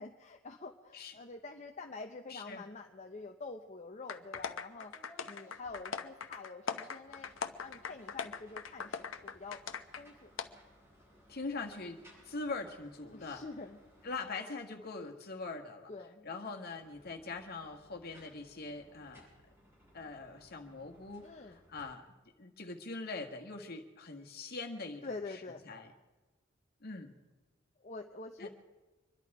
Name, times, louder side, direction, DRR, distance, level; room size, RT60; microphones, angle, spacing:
voice 1, 0.0-4.9 5.3-7.3 7.6-9.6 10.0-10.3 13.1-13.8 15.9-16.3 21.2-21.6 25.0-25.7 27.8-28.5, left 3 dB, 35° left, 3 dB, 0.8 m, -46 dB
voice 2, 2.3-2.7 11.3-13.4 14.0-15.9 16.2-19.3 19.9-25.9 26.8-27.2 28.4-28.5, left 3 dB, 50° left, 3 dB, 1.6 m, -43 dB
sound 1, 4.1-10.0 10.4-10.5, left 6 dB, 75° left, 0.8 m, -40 dB
sound 2, 4.3-4.5 4.7-6.3 6.7-14.8 16.5-21.8, equal, 10° right, 5.6 m, -62 dB
25.0 x 11.5 x 4.8 m, 1.2 s
head